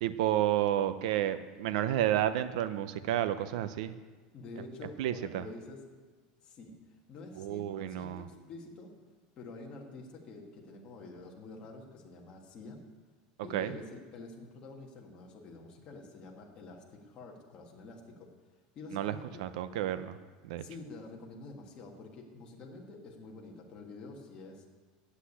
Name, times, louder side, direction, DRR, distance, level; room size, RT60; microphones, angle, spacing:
voice 1, 0.0-3.9 5.0-5.5 7.4-8.2 13.5-13.7 18.9-19.1 19.4-20.2 20.4-20.6, right 12 dB, 65° right, 11 dB, 0.6 m, -31 dB
voice 2, 4.3-5.8 6.4-6.8 7.1-8.9 9.4-12.8 13.4-18.3 18.7-19.4 20.5-24.7, left 3 dB, 25° left, -1 dB, 1.4 m, -48 dB
8.1 x 8.1 x 8.5 m, 1.4 s
supercardioid pair, 175°, 4 cm